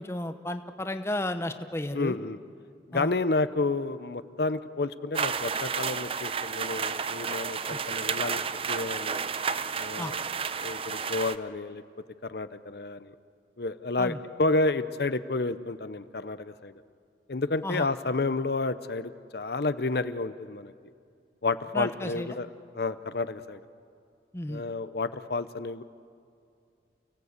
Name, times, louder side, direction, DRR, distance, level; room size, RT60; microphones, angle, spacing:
voice 1, 0.0-2.2 2.9-3.1 7.7-7.8 10.0-10.1 14.0-14.2 17.6-17.9 21.7-22.4 24.3-24.6, left 1 dB, 15° left, 8 dB, 0.8 m, -33 dB
voice 2, 1.9-2.4 2.9-8.4 8.7-9.2 9.8-10.1 10.6-11.8 12.2-13.1 13.6-16.7 17.3-20.7 21.4-22.5 22.7-23.6 24.5-25.8, left 3 dB, 60° left, 12 dB, 0.7 m, -30 dB
sound 1, 5.1-11.4, right 6 dB, 30° right, 0.6 m, -31 dB
30.0 x 17.5 x 8.2 m, 2.3 s
head